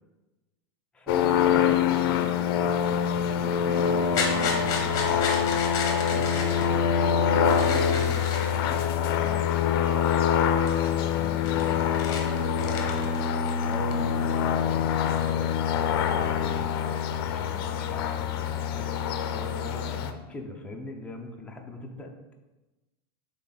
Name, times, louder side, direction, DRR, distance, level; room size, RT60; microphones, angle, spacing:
voice 1, 0.9-5.6 6.0-8.8 9.1-9.8 10.9-13.1 13.6-16.7 17.1-18.9 19.3-22.1, left 2 dB, 10° left, 1 dB, 0.8 m, -41 dB
sound 1, 1.1-20.1, left 8 dB, 65° left, 0.6 m, -25 dB
sound 2, 4.0-6.7 7.4-8.7 9.4-9.5 10.0-10.4 10.7-10.8 11.1-14.2 14.5-15.2, left 4 dB, 30° left, 1.1 m, -33 dB
8.1 x 3.7 x 4.1 m, 1.1 s
supercardioid pair, 155°, 13 cm